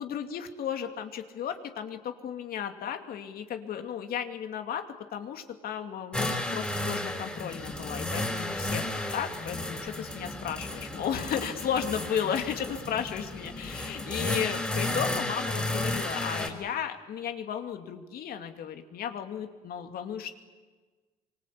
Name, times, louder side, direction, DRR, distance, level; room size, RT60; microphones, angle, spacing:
voice 1, 0.0-4.9 5.1-8.9 9.1-20.3, left 8 dB, 60° left, 6 dB, 2.6 m, -34 dB
sound 1, 6.1-16.5, left 1 dB, 5° left, 4.5 m, -33 dB
25.5 x 24.5 x 8.5 m, 1.3 s
cardioid pair, 110°, 17 cm